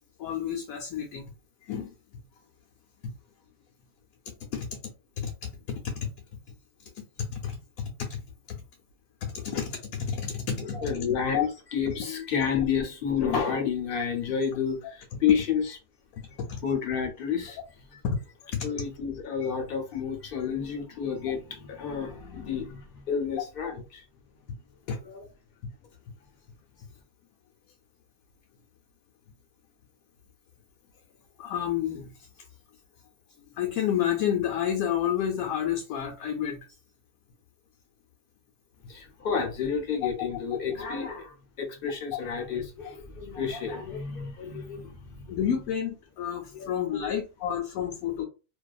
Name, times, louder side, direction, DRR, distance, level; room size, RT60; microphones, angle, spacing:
voice 1, 0.2-1.3 1.6-1.9 3.0-3.1 4.4-4.8 5.2-6.4 6.9-8.2 8.5-8.6 9.2-10.9 11.3-11.4 16.1-16.6 18.0-18.2 18.5-18.7 24.9-25.0 31.4-32.1 32.4-32.5 33.5-36.6 45.3-48.2, left 9 dB, 80° left, 1.0 m, -30 dB
voice 2, 10.6-15.8 16.6-17.6 17.9-18.0 18.6-24.0 25.0-25.2 38.9-45.4 46.5-46.7 46.9-47.1, left 7 dB, 50° left, 0.8 m, -30 dB
2.6 x 2.3 x 2.3 m
omnidirectional pair, 1.5 m